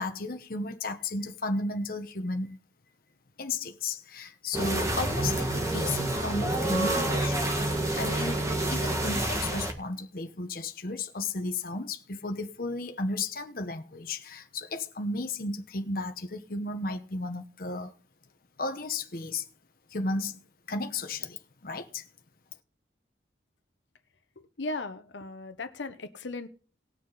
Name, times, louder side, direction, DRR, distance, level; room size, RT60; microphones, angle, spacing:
voice 1, 0.0-2.6 3.4-7.4 8.0-17.9 18.6-19.4 19.9-20.4 20.7-22.1, left 2 dB, 50° left, 1.0 m, -34 dB
sound 1, 4.5-9.7, right 1 dB, 20° right, 1.7 m, -28 dB
voice 2, 24.6-26.5, left 2 dB, 85° left, 1.1 m, -36 dB
19.0 x 6.5 x 4.1 m
head